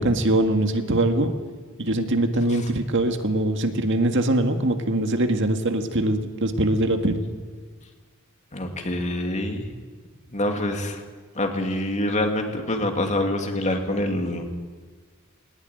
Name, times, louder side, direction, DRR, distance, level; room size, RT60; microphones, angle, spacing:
voice 1, 0.0-1.3 1.8-7.2, right 1 dB, 60° right, 6 dB, 1.9 m, -22 dB
voice 2, 8.5-9.6 10.3-11.0 11.4-14.5, left 1 dB, 35° left, 3 dB, 2.7 m, -26 dB
19.5 x 19.5 x 9.2 m, 1.5 s
head